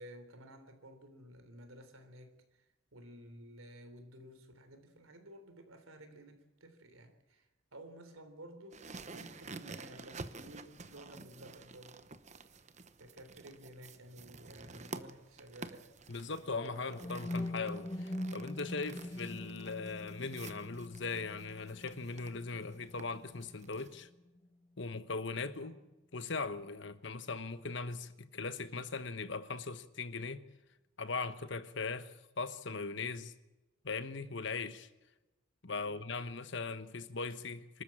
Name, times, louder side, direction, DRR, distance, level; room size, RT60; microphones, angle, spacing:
voice 1, 0.0-8.8 9.1-12.1 13.0-15.9 25.6-25.8 35.7-36.0, right 1 dB, 80° right, 3.6 m, -54 dB
sound 1, 8.7-23.9, right 3 dB, 35° right, 1.0 m, -51 dB
voice 2, 16.1-24.1 24.8-25.8 26.1-30.4 31.0-33.3 33.8-34.9 35.6-37.8, left 4 dB, 55° left, 1.1 m, -39 dB
sound 2, 16.4-24.5, left 1 dB, 20° left, 0.8 m, -44 dB
25.5 x 13.0 x 8.8 m
head